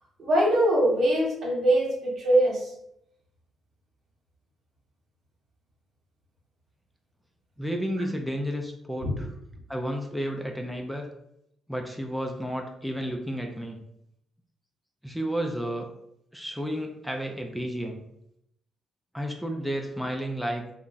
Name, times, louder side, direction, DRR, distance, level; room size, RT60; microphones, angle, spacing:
voice 1, 0.2-2.7 9.0-9.1, right 1 dB, 65° right, -3 dB, 1.1 m, -22 dB
voice 2, 7.6-9.3 9.7-11.1 11.7-13.8 15.0-15.9 16.3-18.0 19.1-20.7, equal, ahead, 2 dB, 0.4 m, -32 dB
2.2 x 2.0 x 3.8 m, 0.78 s
supercardioid pair, 65°, 0 cm